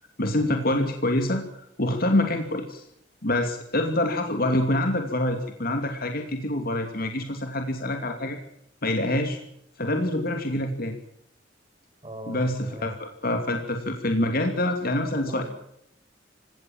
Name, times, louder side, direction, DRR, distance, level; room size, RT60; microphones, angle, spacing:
voice 1, 0.2-1.4 1.8-2.9 3.2-8.4 8.8-9.4 9.8-11.0 12.3-15.4, left 1 dB, 55° left, 5 dB, 2.7 m, -26 dB
voice 2, 12.0-13.0 15.2-15.4, right 1 dB, 30° right, 6 dB, 5.5 m, -40 dB
28.0 x 17.0 x 7.4 m, 0.74 s
head